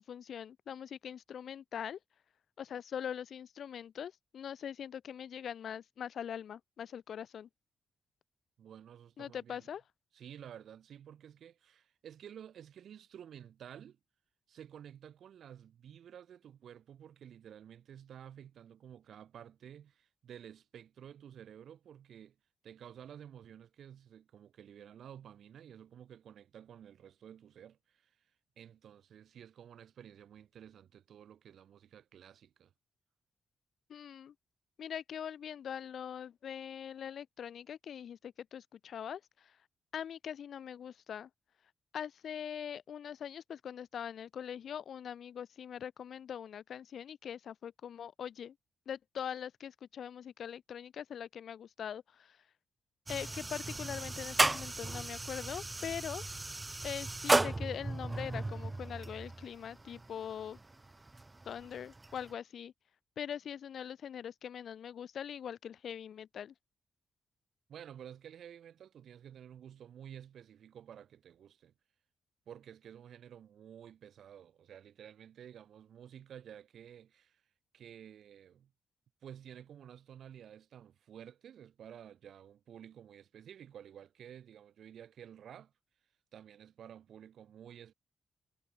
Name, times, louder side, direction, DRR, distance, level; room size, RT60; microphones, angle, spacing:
voice 1, 0.0-2.0 2.6-7.5 9.2-9.8 33.9-34.3 34.8-39.5 39.9-41.3 41.9-48.5 48.9-52.4 53.1-56.2 56.8-60.6 61.5-62.7 63.2-66.5, left 8 dB, 65° left, 0.6 m, -42 dB
voice 2, 8.6-9.7 10.1-14.0 14.5-22.4 22.6-28.3 28.6-32.7 67.7-71.7 72.5-77.4 77.7-78.7 79.2-85.7 86.3-87.9, right 9 dB, 75° right, 3.7 m, -52 dB
sound 1, 53.1-62.3, right 2 dB, 15° right, 0.4 m, -35 dB
wide cardioid pair, 165°, 0 cm